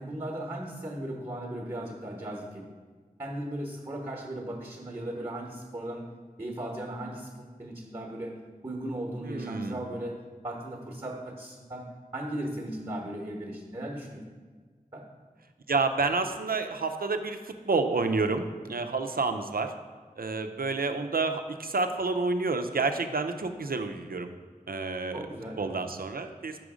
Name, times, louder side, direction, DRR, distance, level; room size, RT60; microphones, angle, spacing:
voice 1, 0.0-2.7 3.2-6.0 6.4-8.3 8.6-10.2 10.4-11.9 12.1-14.2 14.9-15.0 25.1-25.6, right 1 dB, 25° right, 0 dB, 1.0 m, -37 dB
voice 2, 9.3-9.8 15.7-19.7 20.2-24.3 24.7-25.2 25.6-26.6, right 3 dB, 75° right, 7 dB, 0.5 m, -29 dB
6.3 x 5.1 x 4.9 m, 1.5 s
wide cardioid pair, 50°, 15 cm